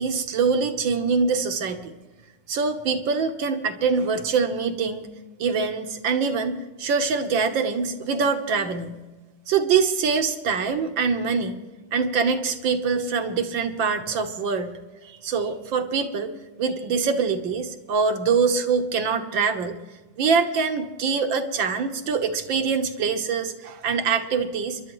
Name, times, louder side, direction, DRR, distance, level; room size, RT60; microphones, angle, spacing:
voice 1, 0.0-1.9 2.5-5.1 5.4-9.0 9.5-11.6 11.9-14.8 15.0-16.3 16.6-19.8 20.2-24.8, right 5 dB, 65° right, 7 dB, 1.8 m, -24 dB
28.0 x 11.5 x 3.1 m, 1.2 s
omnidirectional pair, 2.4 m